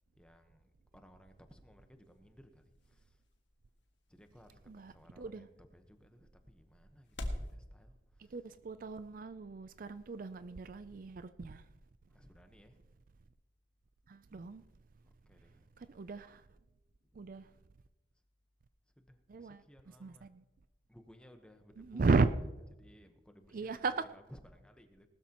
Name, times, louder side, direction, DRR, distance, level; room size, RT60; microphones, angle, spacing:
voice 1, 0.2-3.2 4.1-8.5 12.1-12.8 15.0-15.7 19.0-20.3 20.9-22.1 22.4-25.1, equal, 5° left, 1.1 m, -60 dB
sound 1, 1.3-7.5, left 1 dB, 85° left, 1.7 m, -48 dB
voice 2, 4.7-5.5 8.2-11.7 14.1-14.6 15.8-16.5 17.1-17.5 19.3-19.6 20.0-20.4 21.8-22.3 23.5-24.1, right 4 dB, 50° right, 0.4 m, -35 dB
19.5 x 13.0 x 3.0 m
head